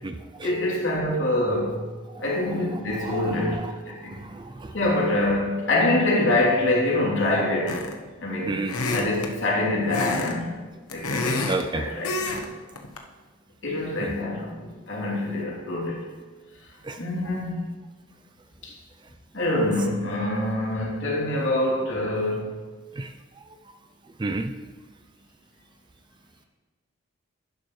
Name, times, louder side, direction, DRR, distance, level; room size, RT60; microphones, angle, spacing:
voice 1, 0.4-1.8 2.2-4.1 4.7-7.8 8.2-8.7 8.9-10.6 10.9-12.4 13.6-16.0 17.0-17.7 18.6-18.7 19.3-22.5, left 1 dB, 55° left, -4 dB, 3.1 m, -25 dB
voice 2, 3.0-3.6 4.0-4.7 8.5-8.7 11.5-11.8 14.0-14.1 16.8-17.0 23.0-23.1 24.2-24.5, right 3 dB, 20° right, 7 dB, 0.4 m, -31 dB
sound 1, 7.7-8.1 8.7-9.3 9.9-10.3 10.7-11.6 12.0-12.5 12.8-13.0, left 3 dB, 85° left, 1.1 m, -28 dB
11.5 x 11.0 x 3.2 m, 1.3 s
head